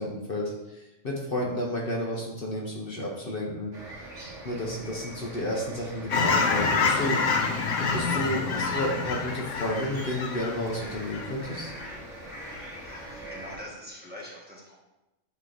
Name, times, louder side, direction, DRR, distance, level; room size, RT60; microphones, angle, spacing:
voice 1, 0.0-4.1 4.4-7.2 7.8-11.7, left 1 dB, 50° left, -2 dB, 1.1 m, -31 dB
sound 1, 3.7-13.6, right 1 dB, 85° right, 1.7 m, -43 dB
Fowl / Chirp tweet, 6.1-11.9 12.3-12.6, left 4 dB, 90° left, 1.1 m, -27 dB
voice 2, 12.5-14.8, left 1 dB, 10° right, -5 dB, 1.3 m, -44 dB
9.0 x 3.1 x 3.9 m, 1.0 s
omnidirectional pair, 1.2 m